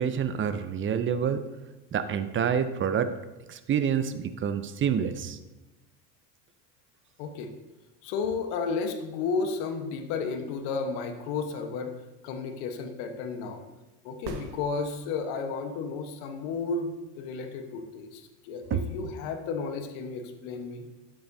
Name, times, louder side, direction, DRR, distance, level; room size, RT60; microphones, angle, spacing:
voice 1, 0.0-1.4 1.9-3.1 3.5-5.4 18.7-18.8, right 8 dB, 25° right, 11 dB, 0.6 m, -27 dB
voice 2, 7.2-7.5 8.0-12.0 12.2-13.6 14.0-20.8, left 4 dB, 65° left, 6 dB, 1.3 m, -33 dB
sound 1, 14.2-15.4 19.3-19.4, right 2 dB, 55° right, 1.5 m, -41 dB
11.5 x 7.6 x 2.7 m, 1.1 s
supercardioid pair, 95°, 46 cm